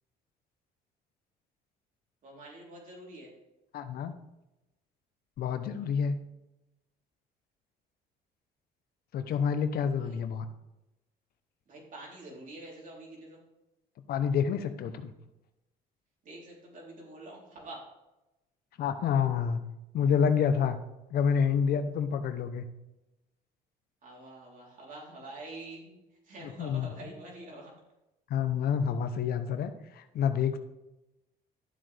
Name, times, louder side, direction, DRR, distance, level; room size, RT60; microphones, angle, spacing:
voice 1, 2.2-3.3 10.0-10.2 11.7-13.4 16.2-17.8 24.0-25.9 26.3-27.7, right 2 dB, 50° right, -2 dB, 3.6 m, -46 dB
voice 2, 3.7-4.1 5.4-6.1 9.1-10.5 14.1-15.1 18.8-19.6 19.9-20.8 21.1-22.6 26.4-26.9 28.3-30.6, left 7 dB, 65° left, 10 dB, 0.8 m, -28 dB
12.0 x 7.5 x 3.4 m, 0.97 s
cardioid pair, 110°, 17 cm